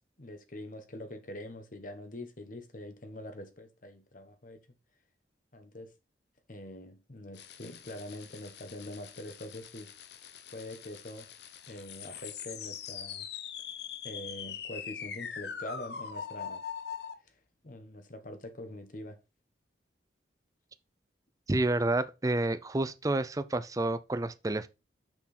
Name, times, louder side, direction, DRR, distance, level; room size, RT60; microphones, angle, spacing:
voice 1, 0.2-4.6 5.5-5.9 6.5-9.9 10.5-11.3 11.7-13.3 14.0-16.6 17.6-19.2, left 1 dB, 45° left, 1.1 m, -44 dB
sound 1, 7.3-17.1, left 7 dB, 65° left, 0.8 m, -42 dB
voice 2, 21.5-24.7, right 2 dB, 20° right, 0.4 m, -29 dB
6.1 x 6.0 x 4.2 m
head